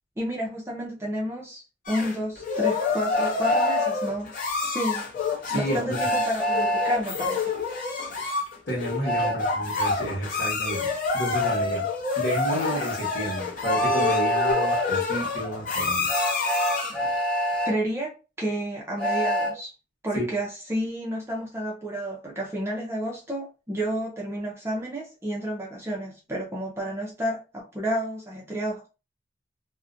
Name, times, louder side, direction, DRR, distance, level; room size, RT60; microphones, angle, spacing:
voice 1, 0.2-5.1 5.5-7.5 9.2-9.3 17.6-19.7 20.0-28.9, equal, 15° right, 0.5 m, -31 dB
sound 1, 1.9-17.1, left 4 dB, 45° left, 0.6 m, -28 dB
Train, 3.1-3.9 6.0-7.0 9.0-9.4 11.4-11.6 13.6-14.9 16.1-17.7 19.0-19.5, equal, 5° left, 1.0 m, -25 dB
voice 2, 5.4-6.0 8.7-11.9 12.2-16.1 20.1-20.3, equal, 60° left, 1.0 m, -31 dB
2.4 x 2.1 x 2.4 m
head